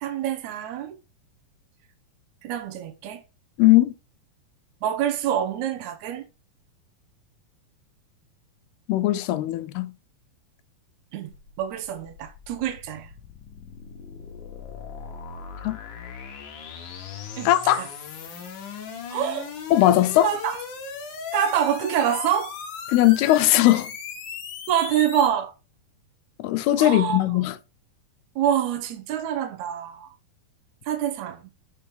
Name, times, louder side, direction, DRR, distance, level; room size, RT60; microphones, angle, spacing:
voice 1, 0.0-1.0 2.4-3.2 4.8-6.2 11.1-11.3 11.6-13.1 17.4-17.9 19.1-19.5 20.2-20.6 21.3-22.5 24.7-25.5 26.8-27.2 28.4-30.1 30.9-31.4, right 10 dB, 70° right, 1.8 m, -26 dB
voice 2, 3.6-3.9 8.9-9.9 15.6-15.8 17.5-17.8 19.7-20.3 22.9-23.9 26.4-27.6, left 15 dB, 85° left, 2.7 m, -19 dB
sound 1, 11.3-25.3, left 6 dB, 60° left, 2.5 m, -38 dB
6.9 x 5.7 x 3.7 m
omnidirectional pair, 4.5 m